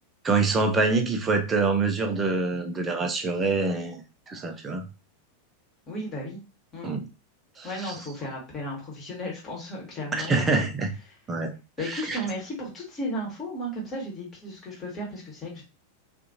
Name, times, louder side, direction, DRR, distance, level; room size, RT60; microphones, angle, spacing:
voice 1, 0.2-4.8 6.8-7.1 7.6-7.9 10.1-10.9 11.3-11.5 11.8-12.2, right 3 dB, 20° right, 0.5 m, -25 dB
voice 2, 5.9-6.4 6.7-6.9 7.6-10.7 11.1-11.2 11.8-15.6, equal, 25° left, 1.3 m, -34 dB
2.5 x 2.5 x 2.7 m
figure-of-eight pair, 90°, 0 cm